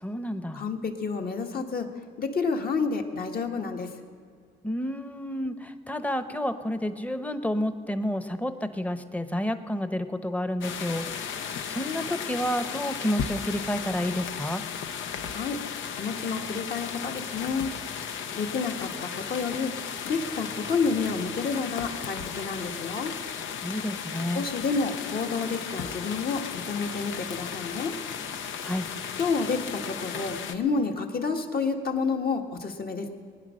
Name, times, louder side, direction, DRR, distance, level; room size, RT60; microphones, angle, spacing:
voice 1, 0.0-0.6 4.6-11.1 11.7-14.6 23.6-24.4 28.6-28.9, left 1 dB, 5° left, 10 dB, 0.9 m, -30 dB
voice 2, 0.5-1.9 2.2-3.9 15.3-15.6 16.0-17.7 18.3-19.7 20.0-23.1 24.3-27.9 29.2-33.1, left 4 dB, 50° left, 3 dB, 1.6 m, -29 dB
sound 1, 10.6-30.5, left 7 dB, 75° left, 0.9 m, -35 dB
21.5 x 9.8 x 6.4 m, 2.1 s
cardioid pair, 90°, 20 cm